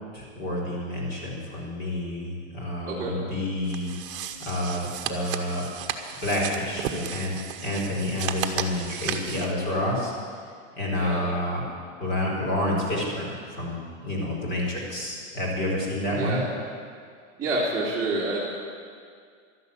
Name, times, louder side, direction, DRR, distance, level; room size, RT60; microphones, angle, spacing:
voice 1, 0.1-3.9 4.4-5.6 6.2-7.4 7.6-10.1 10.8-11.6 12.0-16.4, left 1 dB, 25° left, -3 dB, 4.4 m, -29 dB
sound 1, 3.7-9.5, right 9 dB, 45° right, 1.2 m, -34 dB
voice 2, 10.9-11.3 16.1-16.5 17.4-18.4, right 2 dB, 10° right, -10 dB, 2.6 m, -28 dB
12.5 x 11.0 x 8.4 m, 2.1 s
supercardioid pair, 160°, 40 cm